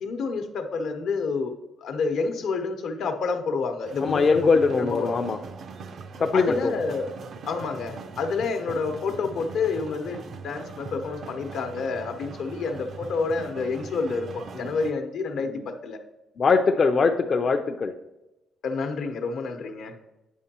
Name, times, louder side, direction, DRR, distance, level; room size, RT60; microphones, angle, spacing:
voice 1, 0.0-5.2 6.3-7.1 7.5-16.0 18.6-19.9, left 4 dB, 75° left, 6 dB, 0.8 m, -29 dB
sound 1, 3.8-14.9, right 4 dB, 60° right, 0.4 m, -41 dB
voice 2, 4.0-5.4 6.2-6.7 14.5-14.7 16.4-17.9, left 4 dB, 45° left, 3 dB, 0.4 m, -22 dB
9.2 x 5.2 x 2.8 m, 0.96 s
cardioid pair, 90°, 0 cm